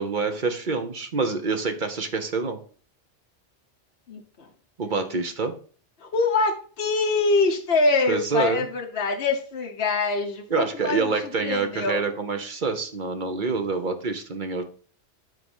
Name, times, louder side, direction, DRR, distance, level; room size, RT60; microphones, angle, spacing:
voice 1, 0.0-2.6 4.8-5.5 8.1-8.7 10.5-14.6, right 4 dB, 45° right, 6 dB, 1.1 m, -26 dB
voice 2, 4.1-4.5 4.8-5.2 6.0-11.1 11.4-12.0 13.8-13.9, left 3 dB, 60° left, 0 dB, 1.3 m, -25 dB
9.4 x 3.9 x 5.5 m, 0.43 s
omnidirectional pair, 1.2 m